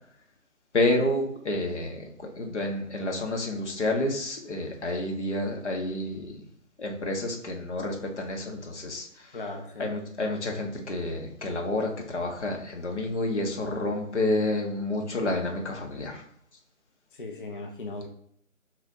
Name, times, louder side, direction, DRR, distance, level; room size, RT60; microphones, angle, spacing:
voice 1, 0.7-2.0 2.4-6.4 6.8-9.1 9.8-16.2, left 2 dB, 55° left, 1 dB, 1.6 m, -29 dB
voice 2, 9.3-9.9 14.2-14.4 17.1-18.1, left 2 dB, 40° left, 3 dB, 0.7 m, -38 dB
7.6 x 4.8 x 2.8 m, 0.69 s
figure-of-eight pair, 150°, 41 cm